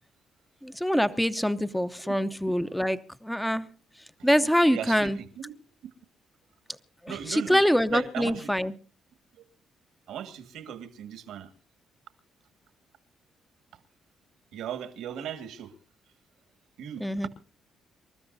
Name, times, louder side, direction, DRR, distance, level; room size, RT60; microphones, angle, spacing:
voice 1, 0.6-3.7 4.2-5.2 7.0-8.7 17.0-17.3, equal, 5° left, 12 dB, 0.8 m, -25 dB
voice 2, 4.7-5.1 5.4-5.5 7.1-7.6 7.9-8.5 10.1-11.5 14.5-15.7 16.8-17.0, right 9 dB, 85° right, 8 dB, 1.8 m, -37 dB
27.5 x 13.0 x 2.7 m, 0.36 s
cardioid pair, 90°, 0 cm